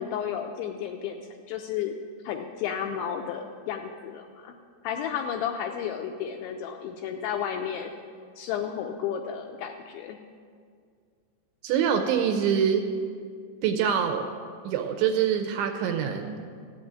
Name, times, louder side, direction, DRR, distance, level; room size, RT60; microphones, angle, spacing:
voice 1, 0.0-2.0 2.2-4.5 4.8-7.9 8.4-10.2, left 8 dB, 85° left, 3 dB, 2.7 m, -32 dB
voice 2, 11.6-12.8 13.6-14.3 14.7-16.4, right 8 dB, 80° right, 5 dB, 2.8 m, -25 dB
14.5 x 7.4 x 8.8 m, 2.1 s
omnidirectional pair, 5.8 m